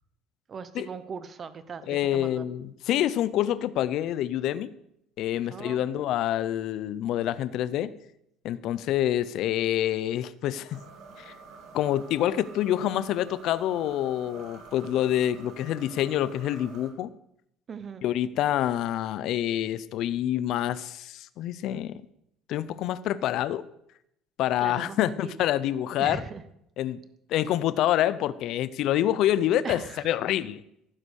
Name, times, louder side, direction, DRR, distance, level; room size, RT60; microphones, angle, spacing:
voice 1, 0.5-2.5 5.5-5.8 17.7-18.0 24.6-25.5 26.0-26.4 29.6-30.1, right 6 dB, 25° right, 13 dB, 1.0 m, -39 dB
voice 2, 1.9-4.7 5.2-7.9 8.4-10.8 11.2-11.3 11.7-17.1 18.0-22.0 22.5-23.6 24.4-26.2 26.8-27.0 27.3-30.6, left 12 dB, 50° left, 16 dB, 0.7 m, -27 dB
sound 1, 10.7-16.9, right 4 dB, 55° right, 3.3 m, -48 dB
17.0 x 10.0 x 6.4 m, 0.76 s
cardioid pair, 175°, 0 cm